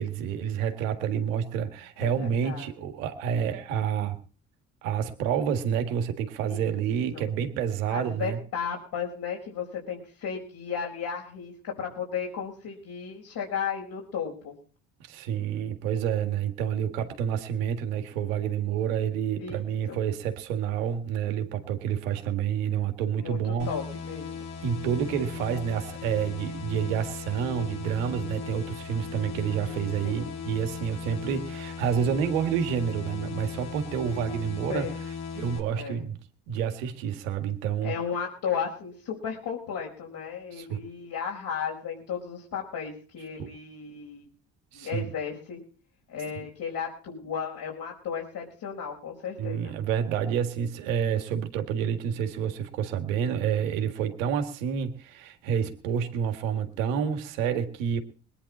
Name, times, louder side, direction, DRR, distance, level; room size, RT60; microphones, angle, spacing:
voice 1, 0.0-4.2 4.8-8.4 15.1-23.7 24.6-34.9 35.4-36.2 36.5-38.0 40.5-40.8 43.4-43.5 44.7-45.0 46.4-46.5 49.4-58.0, right 8 dB, 90° right, 7 dB, 1.9 m, -29 dB
voice 2, 2.0-2.6 6.5-6.7 7.1-7.3 7.9-14.5 19.4-20.0 23.1-24.5 30.0-30.4 34.7-35.0 35.7-36.0 37.8-44.3 44.7-45.6 46.1-49.7, left 7 dB, 65° left, -2 dB, 4.9 m, -34 dB
sound 1, 23.6-35.6, left 5 dB, 85° left, 2.6 m, -37 dB
21.5 x 10.0 x 4.2 m, 0.39 s
hypercardioid pair, 60°, 38 cm